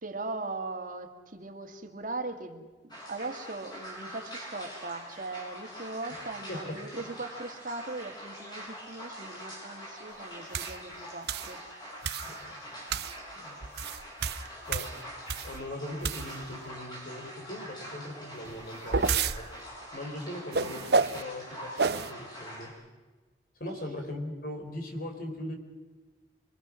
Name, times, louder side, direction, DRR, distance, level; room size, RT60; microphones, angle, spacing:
voice 1, 0.0-11.6 23.7-23.9, right 2 dB, 50° right, 6 dB, 1.9 m, -39 dB
sound 1, 2.9-22.7, equal, 25° left, 7.9 m, -44 dB
sound 2, 10.5-10.8 11.3-11.5 12.0-12.4 12.9-13.2 13.6-15.6 16.0-16.5 18.4-19.4 20.5-21.2 21.8-22.1, right 4 dB, 65° right, 0.7 m, -29 dB
voice 2, 12.2-12.6 13.4-13.6 14.7-15.0 15.4-19.5 19.9-22.8 23.6-25.5, left 1 dB, 55° left, 4 dB, 4.3 m, -40 dB
26.0 x 23.5 x 6.2 m, 1.3 s
head